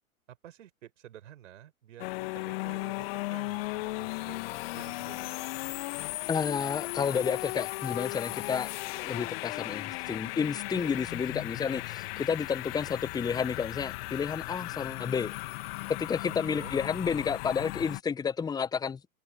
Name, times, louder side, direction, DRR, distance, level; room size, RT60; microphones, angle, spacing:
voice 1, 0.3-4.5 4.7-5.4 16.5-16.8, right 11 dB, 55° right, 6.1 m, -50 dB
sound 1, 2.0-18.0, left 21 dB, 45° left, 2.7 m, -36 dB
voice 2, 6.3-8.7 9.0-15.3 15.9-19.0, left 6 dB, 10° left, 1.1 m, -31 dB
figure-of-eight pair, 105°, 43 cm